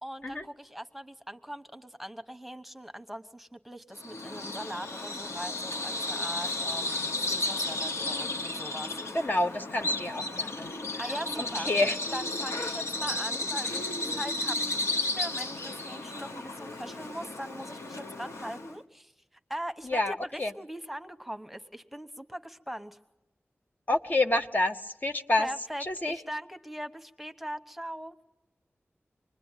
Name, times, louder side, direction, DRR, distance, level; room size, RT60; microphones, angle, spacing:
voice 1, 0.0-9.0 10.4-10.5 11.0-11.7 12.1-19.1 19.5-23.0 25.4-28.2, equal, ahead, 8 dB, 1.1 m, -40 dB
Bird vocalization bird call bird song, 4.0-18.8, left 2 dB, 85° left, 1.2 m, -33 dB
voice 2, 9.1-10.7 11.4-12.0 19.9-20.5 23.9-25.5 25.8-26.2, left 2 dB, 40° left, 6 dB, 0.9 m, -28 dB
26.0 x 21.0 x 9.1 m, 0.96 s
wide cardioid pair, 75°, 5 cm